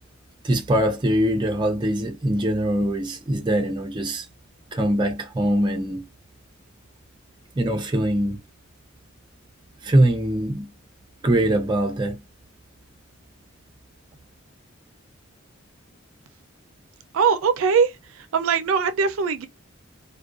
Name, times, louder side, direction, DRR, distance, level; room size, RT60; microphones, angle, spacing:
voice 1, 0.4-4.3 4.7-6.1 7.6-8.4 9.8-10.7 11.2-12.2, right 1 dB, 20° right, 0.4 m, -22 dB
voice 2, 17.1-17.9 18.3-19.5, right 6 dB, 80° right, 0.4 m, -20 dB
2.4 x 2.2 x 2.4 m
head